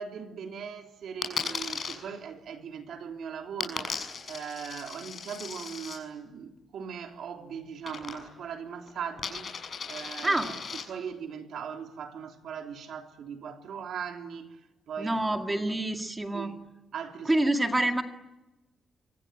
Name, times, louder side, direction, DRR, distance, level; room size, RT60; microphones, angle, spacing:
voice 1, 0.0-9.5 9.9-10.6 10.9-14.6 14.9-15.8 16.3-16.6 16.9-17.5, right 7 dB, 65° right, 3.3 m, -39 dB
Coin (dropping), 1.2-1.9 3.6-6.0 7.8-8.5 8.8-10.8, left 5 dB, 35° left, 6.6 m, -36 dB
voice 2, 15.0-16.5 17.3-18.0, right 1 dB, 10° right, 2.1 m, -27 dB
25.5 x 25.0 x 9.2 m
wide cardioid pair, 175°, 0 cm